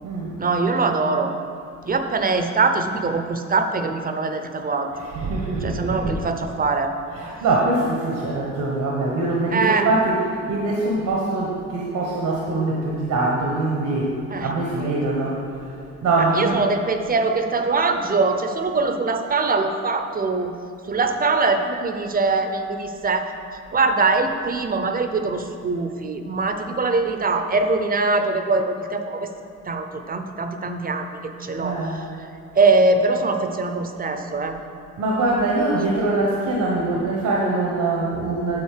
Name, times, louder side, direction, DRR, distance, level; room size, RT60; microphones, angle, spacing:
voice 1, 0.4-1.3 1.8-5.1 5.6-6.9 9.5-9.9 14.3-14.5 14.8-15.0 16.2-20.5 20.9-23.3 23.7-29.3 29.7-32.0 32.5-34.6 35.7-35.8, right 3 dB, 30° right, 6 dB, 0.7 m, -22 dB
voice 2, 4.9-6.1 7.1-15.4 16.0-16.6 31.6-32.0 35.0-38.6, right 2 dB, 75° right, -3 dB, 1.2 m, -23 dB
8.6 x 4.2 x 6.6 m, 2.4 s
cardioid pair, 90°, 30 cm